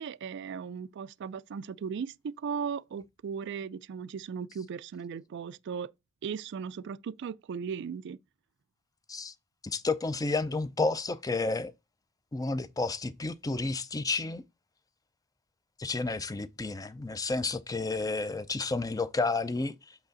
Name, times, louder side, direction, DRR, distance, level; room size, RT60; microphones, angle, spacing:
voice 1, 0.0-5.9 6.2-8.2, right 6 dB, 60° right, 0.3 m, -37 dB
voice 2, 9.7-11.7 12.3-14.4 15.8-19.9, left 3 dB, 15° left, 0.4 m, -31 dB
8.1 x 3.4 x 3.9 m
head